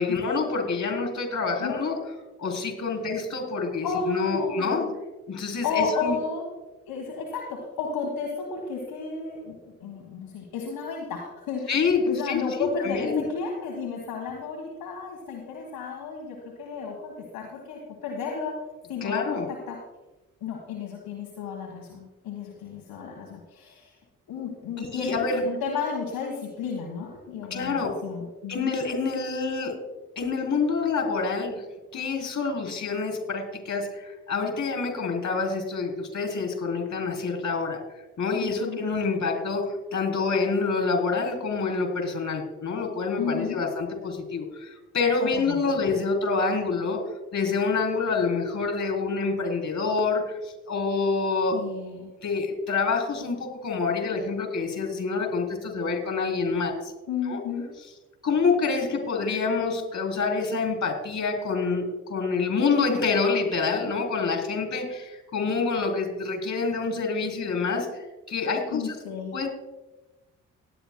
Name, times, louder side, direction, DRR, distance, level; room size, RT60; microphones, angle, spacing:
voice 1, 0.0-2.0 2.4-4.9 5.3-6.2 11.7-13.2 19.0-19.5 24.8-25.4 27.5-28.0 28.5-29.7 30.2-31.7 31.9-37.8 38.2-47.0 47.3-51.6 52.2-56.9 57.3-57.4 58.2-69.0 69.3-69.5, left 4 dB, 50° left, 3 dB, 3.5 m, -27 dB
voice 2, 3.8-4.9 5.6-6.4 6.9-11.7 12.1-18.6 18.9-19.8 20.4-23.9 24.3-28.8 38.4-38.8 43.2-43.6 45.2-45.6 51.5-52.1 57.1-57.7 68.7-69.3, left 5 dB, 70° left, 0 dB, 1.6 m, -33 dB
18.5 x 10.0 x 2.2 m, 1.1 s
hypercardioid pair, 45°, 37 cm